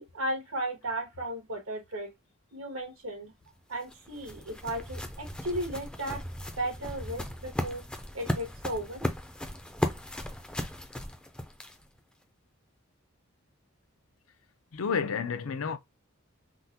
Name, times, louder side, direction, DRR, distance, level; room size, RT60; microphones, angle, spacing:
voice 1, 0.0-2.1 2.5-3.3 3.7-6.3 6.6-7.8 8.1-9.1, right 1 dB, 90° right, 1.3 m, -35 dB
Run - Grass, 3.4-12.0, left 1 dB, 5° left, 0.4 m, -36 dB
voice 2, 14.7-15.8, left 6 dB, 85° left, 0.5 m, -30 dB
3.7 x 2.1 x 2.7 m
head